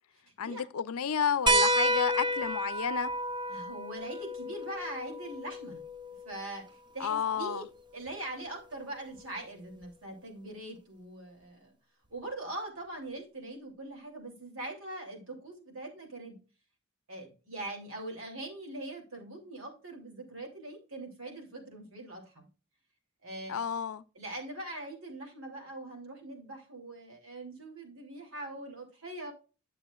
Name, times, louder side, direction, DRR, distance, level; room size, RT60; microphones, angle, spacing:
voice 1, 0.4-3.1 7.0-7.6 23.5-24.0, left 7 dB, 80° left, 0.5 m, -31 dB
sound 1, 1.5-6.5 8.1-8.2 9.8-9.9, right 1 dB, 20° right, 0.5 m, -30 dB
voice 2, 3.5-5.8 6.2-7.7 7.9-11.7 12.1-16.4 17.1-22.5 23.2-23.6 24.1-29.3, right 2 dB, 70° right, 3.0 m, -42 dB
10.0 x 6.8 x 2.4 m
head